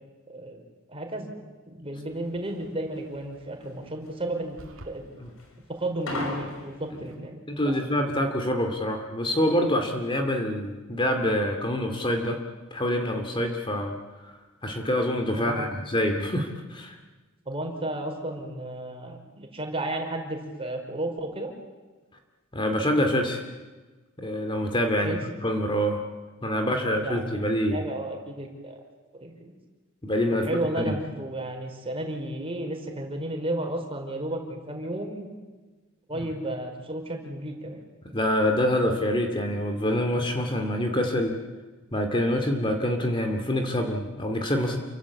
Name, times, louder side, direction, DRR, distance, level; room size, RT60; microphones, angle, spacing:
voice 1, 0.3-0.6 0.9-1.3 1.7-4.6 4.9-5.0 5.8-7.7 15.3-15.7 17.4-21.5 25.0-25.2 26.6-27.4 27.7-28.8 29.2-29.5 30.4-35.3 36.1-37.8, right 1 dB, 25° right, 3 dB, 5.0 m, -33 dB
sound 1, 2.1-7.1, left 1 dB, 75° left, 6.3 m, -36 dB
sound 2, 4.6-5.0, right 1 dB, 70° right, 2.9 m, -44 dB
voice 2, 7.5-12.4 12.7-14.0 14.6-16.9 22.5-23.4 24.2-25.2 25.4-26.0 26.4-27.8 30.0-30.9 38.1-41.3 41.9-44.8, left 1 dB, 25° left, 4 dB, 2.4 m, -26 dB
29.0 x 24.0 x 8.5 m, 1.3 s
head